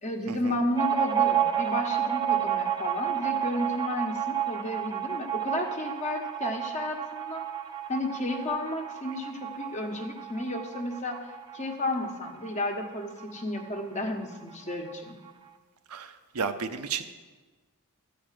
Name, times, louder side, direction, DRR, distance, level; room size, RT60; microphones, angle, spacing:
voice 1, 0.0-7.5 7.9-11.2 11.5-15.1, left 1 dB, 30° left, 3 dB, 1.2 m, -32 dB
sound 1, 0.7-13.9 14.2-14.3 14.5-15.3, right 10 dB, 20° right, 0.6 m, -31 dB
voice 2, 15.9-17.0, right 6 dB, 75° right, 8 dB, 0.7 m, -33 dB
13.5 x 5.1 x 7.5 m, 1.3 s
head